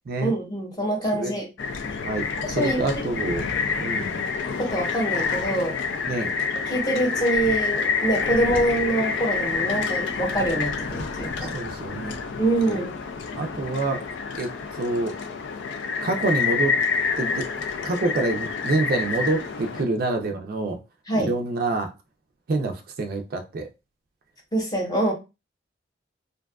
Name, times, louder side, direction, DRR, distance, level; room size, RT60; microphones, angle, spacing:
voice 1, 0.2-1.5 2.4-2.8 4.6-5.7 6.2-6.3 6.7-11.5 12.4-12.9 21.1-21.3 24.5-25.1, right 1 dB, 20° left, 0.9 m, -25 dB
sound 1, 1.6-19.8, left 5 dB, 85° left, 0.4 m, -28 dB
voice 2, 2.0-3.5 3.8-4.2 6.1-6.3 11.5-12.2 12.7-12.8 13.4-14.0 14.4-15.1 16.0-16.7 17.2-17.5 17.8-20.8 21.1-21.9 22.5-23.7, right 2 dB, 55° right, 0.4 m, -27 dB
2.5 x 2.3 x 2.2 m
head